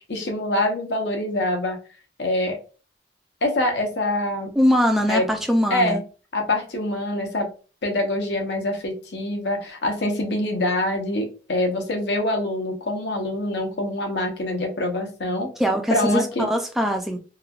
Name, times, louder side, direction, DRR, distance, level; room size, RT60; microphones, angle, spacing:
voice 1, 0.0-1.8 2.2-2.6 3.4-4.6 5.1-5.2 5.7-6.0 6.3-7.5 7.8-15.5 15.9-16.5, left 1 dB, 70° left, 3 dB, 0.7 m, -25 dB
voice 2, 4.6-6.0 15.6-17.2, equal, ahead, 3 dB, 0.4 m, -21 dB
3.0 x 2.2 x 2.4 m, 0.35 s
head